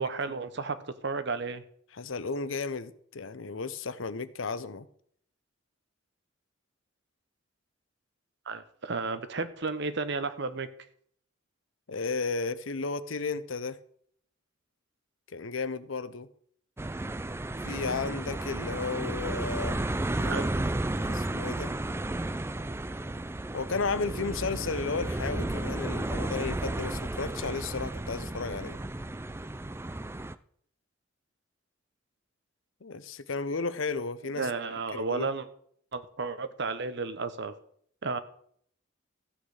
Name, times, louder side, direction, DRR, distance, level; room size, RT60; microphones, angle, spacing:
voice 1, 0.0-1.6 8.5-10.7 20.2-20.6 34.4-35.5 35.9-37.5 38.0-38.2, right 4 dB, 60° right, 1.0 m, -33 dB
voice 2, 1.9-4.9 11.9-13.8 15.3-16.3 17.6-19.8 20.1-20.5 21.0-21.7 23.5-28.8 32.8-34.5 34.9-35.3, left 4 dB, 75° left, 0.8 m, -33 dB
sound 1, 16.8-30.3, right 1 dB, 10° right, 0.4 m, -33 dB
14.0 x 8.8 x 4.9 m
head